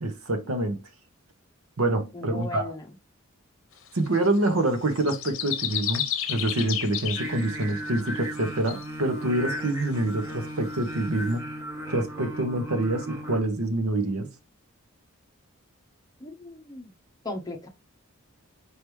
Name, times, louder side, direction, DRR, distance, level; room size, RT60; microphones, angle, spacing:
voice 1, 0.0-0.8 1.8-2.7 3.9-11.5 11.9-14.3, right 1 dB, 85° right, 1.0 m, -26 dB
voice 2, 2.1-2.9 16.2-16.9 17.2-17.7, left 2 dB, 20° left, 0.8 m, -37 dB
sound 1, 3.9-8.4 8.7-8.9 9.5-10.0 10.3-10.4 10.9-11.0 11.3-11.4, left 10 dB, 65° left, 0.8 m, -32 dB
Singing, 7.2-13.4, equal, 15° right, 1.1 m, -36 dB
4.8 x 3.4 x 3.2 m
head